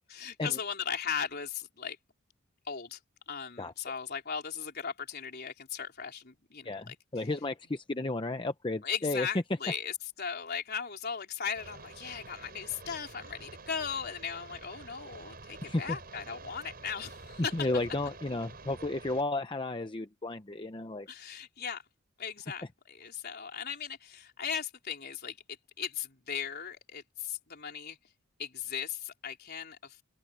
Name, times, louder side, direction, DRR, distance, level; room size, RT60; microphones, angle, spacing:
voice 1, 0.1-2.0 2.7-3.0 3.3-7.3 8.8-17.5 21.1-21.8 22.2-25.4 25.8-28.0 28.4-30.0, left 7 dB, 50° left, 3.9 m, -37 dB
voice 2, 6.6-9.3 15.6-15.8 17.5-21.1, left 2 dB, 25° left, 0.8 m, -33 dB
sound 1, 11.6-19.2, right 3 dB, 45° right, 5.9 m, -49 dB
open air
head